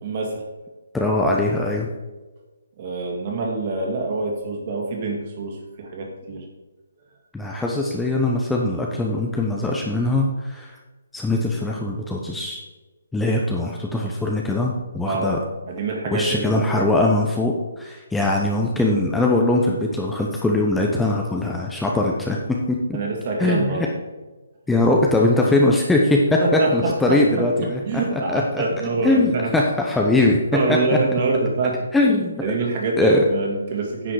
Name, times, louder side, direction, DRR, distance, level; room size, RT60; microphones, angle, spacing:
voice 1, 0.0-0.4 2.8-6.5 15.0-15.3 15.6-16.9 22.9-23.9 26.4-29.5 30.2-31.9 32.4-34.1, right 3 dB, 40° right, 0 dB, 2.4 m, -25 dB
voice 2, 0.9-1.9 7.3-10.8 11.1-12.6 13.1-15.4 16.1-23.0 23.4-23.9 24.7-27.8 28.3-28.6 29.0-30.4 31.9-32.4 33.0-33.2, left 2 dB, 5° left, -2 dB, 0.8 m, -21 dB
9.9 x 6.1 x 4.8 m, 1.2 s
figure-of-eight pair, 140°, 0 cm